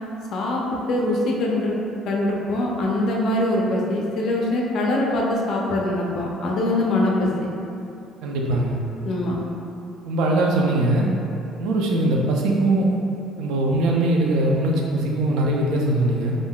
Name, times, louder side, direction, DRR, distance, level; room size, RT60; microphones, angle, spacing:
voice 1, 0.3-1.8 2.1-7.3 9.0-9.4, left 1 dB, 50° left, -2 dB, 0.4 m, -23 dB
voice 2, 8.2-8.8 10.0-11.1 11.6-13.0 13.4-16.3, right 1 dB, 80° right, -1 dB, 0.4 m, -21 dB
3.5 x 2.5 x 2.2 m, 2.6 s
cardioid pair, 160°, 0 cm